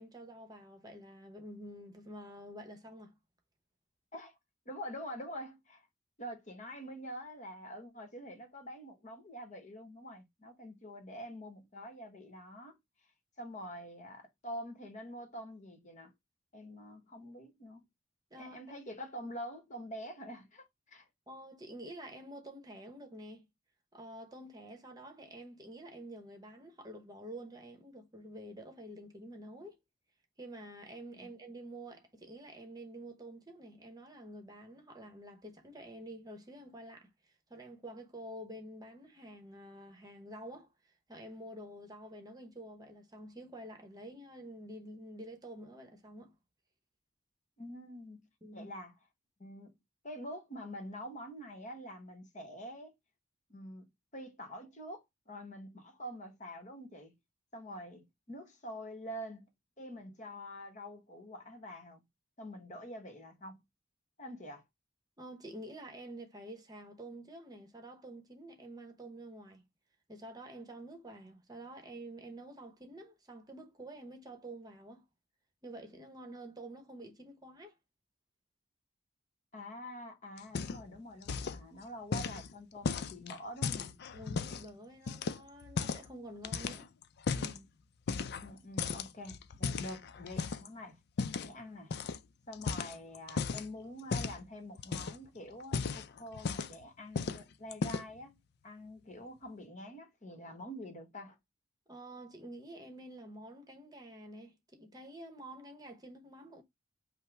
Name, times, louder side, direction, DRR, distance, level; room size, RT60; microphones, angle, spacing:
voice 1, 0.0-3.1 18.3-18.6 21.3-23.5 23.9-29.8 30.4-37.1 37.5-40.7 41.1-46.3 48.4-48.7 65.2-69.6 70.1-75.0 75.6-77.7 84.1-86.9 87.3-87.7 101.9-106.6, right 1 dB, 20° right, 0.9 m, -48 dB
voice 2, 4.7-5.9 6.2-12.8 13.4-16.1 16.5-17.9 18.4-21.0 31.2-31.3 47.6-48.9 49.4-49.8 50.0-52.9 53.5-57.2 57.5-59.5 59.8-62.0 62.4-63.6 64.2-64.6 79.5-84.0 88.4-91.0 91.4-91.9 92.5-98.4 98.6-101.4, equal, 40° left, 1.1 m, -46 dB
sound 1, 80.4-81.0 81.2-81.6 82.1-84.7 85.1-86.1 86.4-87.6 88.1-88.5 88.8-90.7 91.2-91.5 91.9-92.2 92.5-93.7 94.1-94.4 94.8-95.3 95.6-96.8 97.2-97.4 97.7-98.2, left 5 dB, 60° left, 0.4 m, -36 dB
5.5 x 2.1 x 4.5 m
head